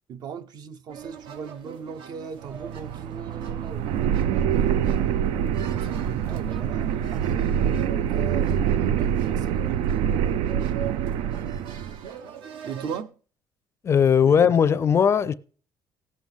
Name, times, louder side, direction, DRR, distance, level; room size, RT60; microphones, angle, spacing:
voice 1, 0.1-4.1 4.5-10.0 12.6-13.2 14.2-14.4, right 6 dB, 50° right, 0.7 m, -39 dB
sound 1, 0.9-13.0, right 9 dB, 75° right, 1.0 m, -41 dB
sound 2, 2.4-12.0, right 9 dB, 90° right, 0.5 m, -25 dB
voice 2, 13.8-15.3, left 7 dB, 30° left, 0.4 m, -18 dB
17.0 x 7.8 x 3.6 m
cardioid pair, 145°, 9 cm